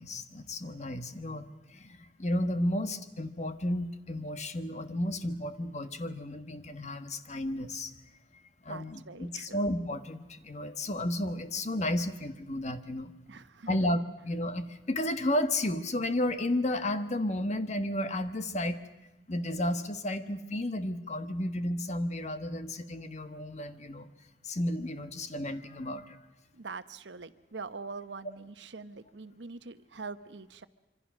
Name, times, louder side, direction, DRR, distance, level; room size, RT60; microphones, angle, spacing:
voice 1, 0.0-7.9 8.6-13.1 13.7-18.8 19.3-24.1 24.4-26.2, left 1 dB, 40° left, 10 dB, 1.3 m, -32 dB
voice 2, 8.7-9.7 13.3-13.8 26.5-30.7, right 4 dB, 85° right, 12 dB, 1.0 m, -43 dB
26.0 x 25.0 x 6.2 m, 0.97 s
head